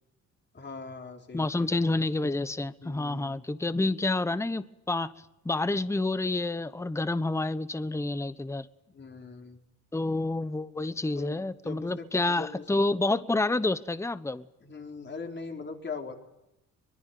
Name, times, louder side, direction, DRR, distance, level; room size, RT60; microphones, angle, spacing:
voice 1, 0.5-1.7 2.8-3.4 8.9-9.6 11.1-12.6 14.6-16.2, left 4 dB, 35° left, 3 dB, 4.4 m, -41 dB
voice 2, 1.3-5.1 5.4-8.7 9.9-14.4, left 2 dB, 10° left, 15 dB, 1.0 m, -28 dB
23.5 x 22.0 x 9.3 m, 0.92 s
cardioid pair, 90°, 30 cm